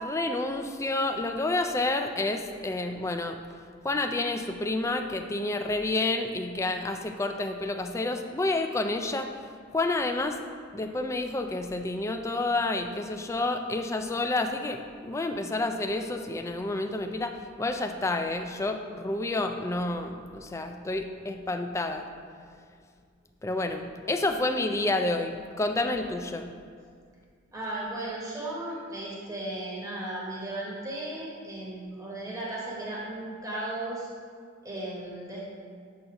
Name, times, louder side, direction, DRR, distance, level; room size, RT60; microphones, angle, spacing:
voice 1, 0.0-3.4 3.8-9.3 9.7-10.4 10.7-22.1 23.4-26.5, left 2 dB, 15° left, 6 dB, 0.3 m, -29 dB
voice 2, 27.5-34.1 34.6-35.4, right 1 dB, 15° right, -5 dB, 1.0 m, -35 dB
7.6 x 2.6 x 5.8 m, 2.1 s
head